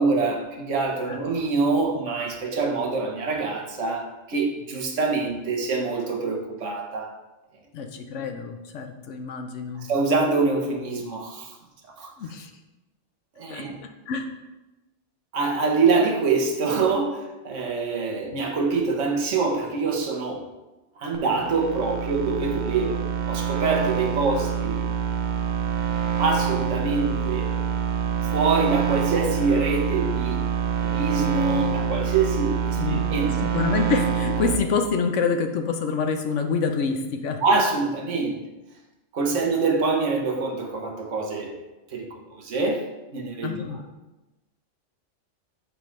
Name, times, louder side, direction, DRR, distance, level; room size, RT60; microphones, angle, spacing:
voice 1, 0.0-7.1 9.8-11.5 12.0-12.1 13.4-13.7 15.3-20.5 21.0-24.8 26.2-27.5 28.2-30.4 30.8-33.5 37.4-38.4 39.1-41.5 41.9-42.8 43.1-43.6, right 4 dB, 85° right, 1 dB, 1.3 m, -25 dB
voice 2, 7.7-9.9 12.2-12.5 13.5-13.6 14.1-14.3 32.8-37.4 39.3-39.4 43.4-43.8, left 5 dB, 80° left, 5 dB, 1.0 m, -27 dB
sound 1, 21.1-34.6, right 7 dB, 60° right, 0.5 m, -26 dB
6.7 x 5.0 x 3.1 m, 1.0 s
omnidirectional pair, 1.2 m